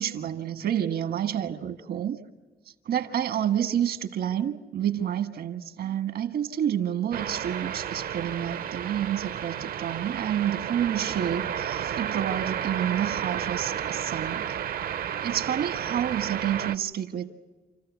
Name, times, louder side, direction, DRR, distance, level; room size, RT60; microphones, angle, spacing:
voice 1, 0.0-2.2 2.8-14.5 15.2-17.3, right 10 dB, 85° right, 1.5 m, -29 dB
sound 1, 7.1-16.8, right 9 dB, 65° right, 0.6 m, -32 dB
28.5 x 14.5 x 8.2 m
wide cardioid pair, 135°, 16 cm